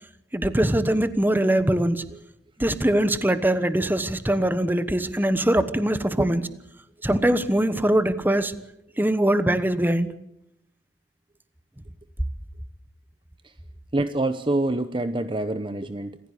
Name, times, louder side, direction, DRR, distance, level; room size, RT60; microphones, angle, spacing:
voice 1, 0.3-2.0 2.6-6.4 7.0-8.5 9.0-10.1, right 1 dB, 10° right, 13 dB, 1.1 m, -22 dB
voice 2, 6.2-6.5 13.4-13.5 13.9-16.2, right 2 dB, 30° right, 11 dB, 0.8 m, -26 dB
27.5 x 15.5 x 8.4 m, 0.81 s
head